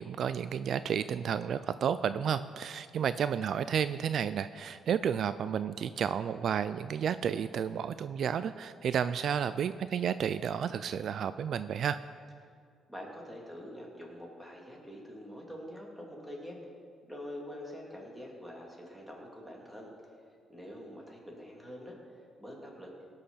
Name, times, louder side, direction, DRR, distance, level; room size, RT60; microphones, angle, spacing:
voice 1, 0.0-12.0, right 8 dB, 65° right, 13 dB, 0.3 m, -31 dB
voice 2, 12.9-16.6 17.1-19.9 20.5-21.9 22.4-22.9, equal, 5° right, -2 dB, 3.0 m, -45 dB
18.0 x 6.5 x 5.7 m, 2.1 s
cardioid pair, 90°, 0 cm